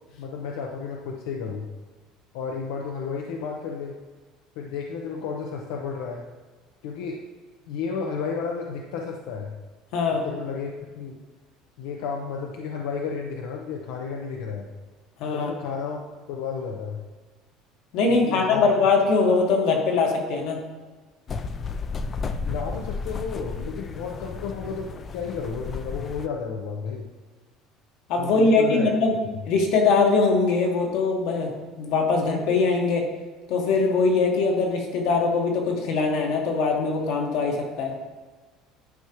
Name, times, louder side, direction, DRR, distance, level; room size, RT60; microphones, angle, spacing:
voice 1, 0.2-1.7 2.3-3.9 4.6-6.2 6.8-7.2 7.7-9.6 10.2-11.2 11.8-14.7 15.3-16.0 16.3-17.0 18.2-18.7 22.4-27.1 28.2-28.9, left 5 dB, 90° left, 0 dB, 0.7 m, -32 dB
voice 2, 9.9-10.2 15.2-15.5 17.9-20.6 28.1-29.1 29.5-31.5 31.8-33.1 33.5-37.9, left 4 dB, 65° left, 2 dB, 1.4 m, -22 dB
sound 1, 21.3-26.3, left 4 dB, 25° left, 0.4 m, -33 dB
11.0 x 5.0 x 3.0 m, 1.3 s
cardioid pair, 145°, 0 cm